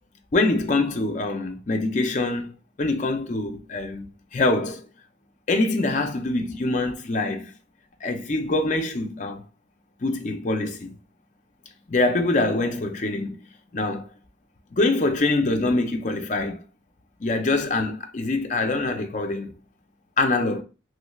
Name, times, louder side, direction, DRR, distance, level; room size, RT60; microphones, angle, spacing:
voice 1, 0.3-2.5 2.8-4.8 5.5-7.5 8.0-9.4 10.0-10.9 11.9-13.4 13.7-14.1 14.7-16.6 17.2-19.5 20.2-20.6, left 2 dB, 40° left, 0.5 m, -24 dB
3.1 x 3.1 x 2.3 m
head